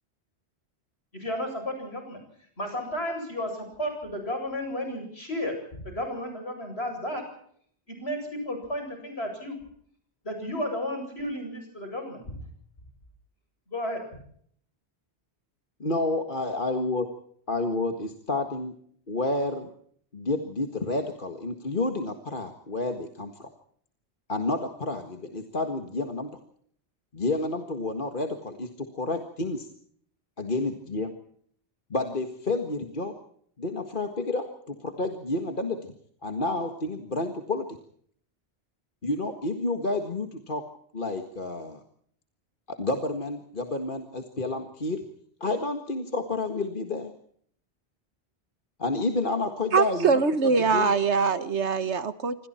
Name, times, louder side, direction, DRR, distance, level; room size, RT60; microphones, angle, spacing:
voice 1, 1.1-2.2 2.6-7.3 7.9-9.6 10.2-12.4 13.7-14.2, left 1 dB, 70° left, 5 dB, 8.3 m, -33 dB
voice 2, 15.8-17.1 17.5-18.8 19.1-19.7 20.1-23.5 24.3-26.3 27.1-29.7 30.4-31.1 31.9-33.2 33.6-35.9 36.2-37.7 39.0-40.6 40.9-41.8 42.7-45.0 45.4-47.1 48.8-50.2 50.7-50.9, left 2 dB, 50° left, 5 dB, 2.0 m, -30 dB
voice 3, 49.7-52.4, right 5 dB, 90° right, 12 dB, 1.7 m, -23 dB
27.5 x 26.0 x 4.4 m, 0.62 s
omnidirectional pair, 1.1 m